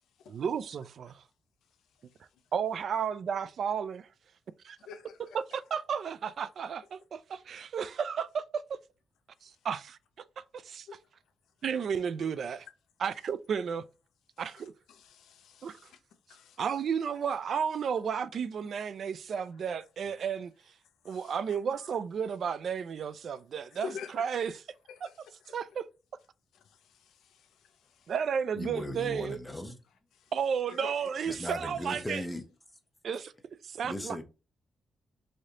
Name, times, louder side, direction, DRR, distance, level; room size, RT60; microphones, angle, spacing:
voice 1, 0.3-1.2 2.5-4.1 4.6-4.8 5.3-8.8 9.4-10.0 10.4-10.9 11.6-12.7 13.0-13.9 14.4-14.7 15.6-15.8 16.6-20.5 21.0-23.9 24.2-24.5 25.5-25.9 28.1-29.4 30.3-32.2 33.0-33.3 33.6-34.2, right 7 dB, 60° right, 0.3 m, -33 dB
voice 2, 4.8-5.4 9.5-9.6 10.9-11.0 11.9-12.4 14.4-16.0 16.3-16.6 21.0-21.9 23.7-24.5 24.9-25.6 26.5-28.1 30.2-30.3 30.7-31.1, left 7 dB, 90° left, 0.5 m, -48 dB
voice 3, 28.5-29.8 31.2-32.4 32.7-32.8 33.8-34.2, left 1 dB, 5° left, 0.8 m, -37 dB
3.2 x 2.7 x 3.6 m
cardioid pair, 100°, 0 cm